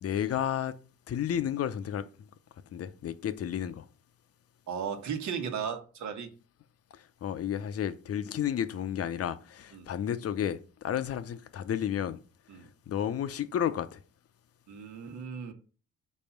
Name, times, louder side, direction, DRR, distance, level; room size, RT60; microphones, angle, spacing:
voice 1, 0.0-0.7 1.1-2.3 2.7-3.9 6.9-12.2 12.6-14.0, left 9 dB, 50° left, 0.7 m, -32 dB
voice 2, 4.7-6.3 9.7-9.9 12.5-12.7 14.7-15.5, right 7 dB, 70° right, 1.3 m, -36 dB
5.4 x 4.2 x 5.7 m
cardioid pair, 90°, 30 cm